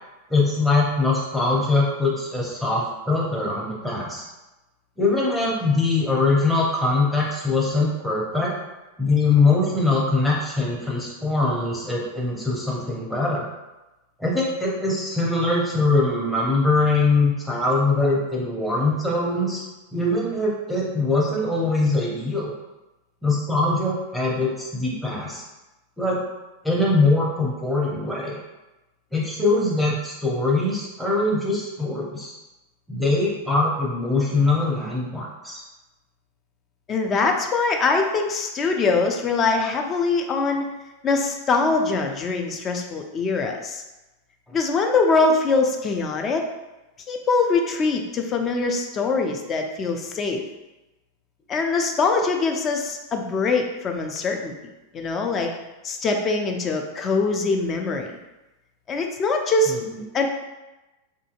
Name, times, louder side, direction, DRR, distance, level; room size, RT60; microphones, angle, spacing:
voice 1, 0.3-4.2 5.0-8.5 9.0-13.5 14.2-19.6 19.9-22.5 23.2-25.4 26.0-26.2 26.6-28.4 29.1-32.3 32.9-35.6 59.9-60.0, left 3 dB, ahead, -5 dB, 0.7 m, -22 dB
voice 2, 36.9-40.7 41.0-43.8 44.5-46.5 47.1-50.4 51.5-54.5 54.9-55.5 55.8-58.2 58.9-59.8 60.1-60.3, left 3 dB, 25° left, 3 dB, 0.3 m, -23 dB
2.7 x 2.6 x 2.4 m, 1.0 s
figure-of-eight pair, 90°, 0 cm